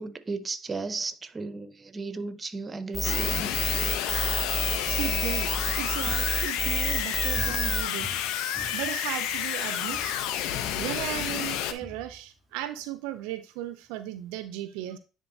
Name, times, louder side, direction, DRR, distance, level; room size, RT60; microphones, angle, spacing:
voice 1, 0.0-3.5, right 3 dB, 30° right, 0.7 m, -35 dB
sound 1, 2.9-7.8, left 1 dB, 20° left, 0.8 m, -29 dB
sound 2, 3.0-11.7, left 10 dB, 75° left, 0.6 m, -30 dB
voice 2, 4.8-8.1 8.7-10.2 10.8-15.0, right 13 dB, 80° right, 0.4 m, -36 dB
Walk footsteps, 6.0-9.6 9.9-10.2 10.5-12.8 13.1-13.2, left 1 dB, ahead, 2.5 m, -46 dB
9.8 x 3.8 x 2.7 m
hypercardioid pair, 70°, 0 cm